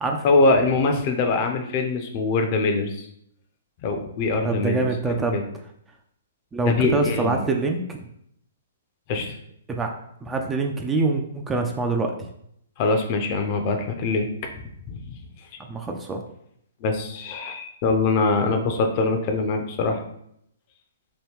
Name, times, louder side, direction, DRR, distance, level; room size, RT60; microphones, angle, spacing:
voice 1, 0.2-3.0 3.8-4.8 5.2-5.4 6.7-7.4 9.1-9.3 12.8-14.3 14.9-15.2 16.8-20.0, left 3 dB, 40° left, 5 dB, 0.5 m, -23 dB
voice 2, 4.4-5.4 6.5-8.0 9.7-9.9 10.2-12.3 15.6-16.2, right 3 dB, 15° right, 3 dB, 0.3 m, -25 dB
2.9 x 2.2 x 3.4 m, 0.71 s
hypercardioid pair, 140°, 0 cm